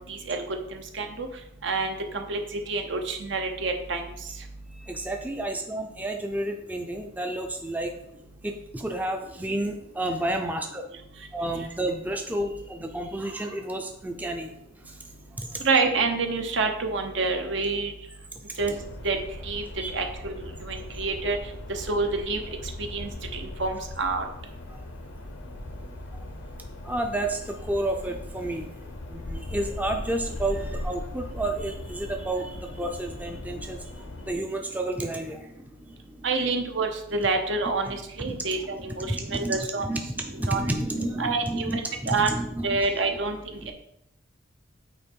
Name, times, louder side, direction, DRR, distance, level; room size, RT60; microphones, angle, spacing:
voice 1, 0.1-0.4 0.7-1.3 1.6-2.4 2.7-4.0 15.6-17.9 18.6-18.7 19.0-19.2 19.4-19.6 19.9-20.3 20.7-21.4 21.7-22.4 22.9-24.2 36.2-39.8 40.5-40.7 41.2-42.3 42.6-43.4, right 3 dB, 70° right, 4 dB, 0.8 m, -27 dB
voice 2, 4.9-7.9 8.4-10.8 11.3-14.5 19.8-19.9 26.8-28.7 29.1-33.8 34.2-35.5 38.2-38.4 39.0-42.8 43.6-43.7, right 1 dB, 10° right, 3 dB, 0.5 m, -30 dB
sound 1, 18.6-34.3, left 1 dB, 80° left, 0.8 m, -39 dB
8.5 x 3.0 x 4.6 m, 0.78 s
head